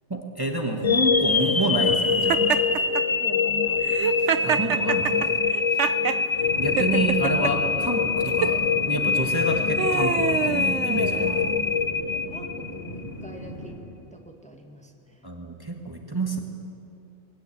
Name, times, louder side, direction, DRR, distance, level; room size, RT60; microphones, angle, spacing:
voice 1, 0.1-2.4 4.4-5.3 6.6-11.4 15.2-16.4, right 1 dB, 20° right, 2 dB, 1.4 m, -28 dB
sound 1, 0.8-12.9, left 5 dB, 30° left, 0.8 m, -24 dB
Laughter, 2.3-3.0 3.8-6.2 6.8-7.5 8.3-8.6 9.3-11.5, right 10 dB, 80° right, 1.0 m, -27 dB
voice 2, 2.9-4.0 4.5-4.9 11.1-11.6 12.1-13.8 14.1-15.2, right 1 dB, 5° left, 3 dB, 1.6 m, -45 dB
sound 2, 6.4-13.7, equal, 55° left, 8.0 m, -38 dB
21.0 x 17.0 x 8.6 m, 2.7 s
omnidirectional pair, 1.2 m